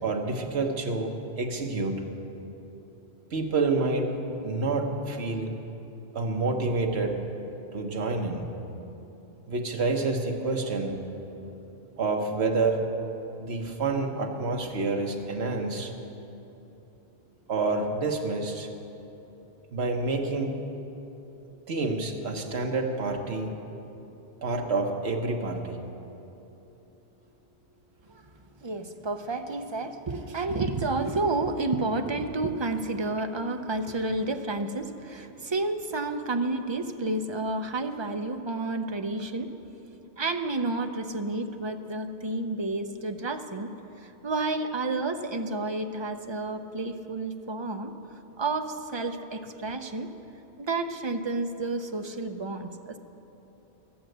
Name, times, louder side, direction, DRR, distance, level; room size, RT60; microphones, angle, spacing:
voice 1, 0.0-2.1 3.3-4.2 4.4-5.5 6.1-7.2 7.7-8.5 9.5-11.0 12.0-12.9 13.4-15.9 17.5-18.7 19.7-20.6 21.7-23.5 24.4-25.8, right 3 dB, 70° right, 2 dB, 1.4 m, -28 dB
voice 2, 28.6-39.6 40.2-43.7 44.0-47.9 48.4-50.1 50.6-53.0, right 2 dB, 30° right, 6 dB, 0.5 m, -30 dB
13.5 x 8.7 x 7.9 m, 3.0 s
omnidirectional pair, 1.1 m